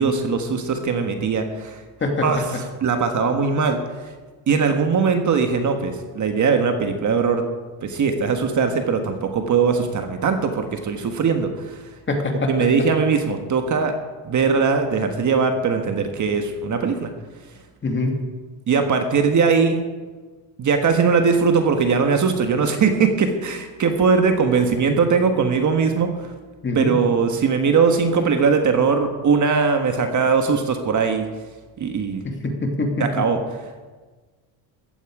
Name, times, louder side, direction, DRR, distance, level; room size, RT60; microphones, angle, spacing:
voice 1, 0.0-1.8 2.2-3.8 4.5-7.4 7.8-11.9 12.5-13.9 14.2-17.1 18.7-19.8 20.6-26.3 26.7-31.3 31.8-32.2 33.0-33.4, right 5 dB, 35° right, 5 dB, 1.5 m, -20 dB
voice 2, 12.1-12.5 17.8-18.2 26.6-27.0 32.2-33.2, left 2 dB, 25° left, 2 dB, 2.6 m, -23 dB
15.0 x 14.0 x 4.9 m, 1.4 s
cardioid pair, 130°, 48 cm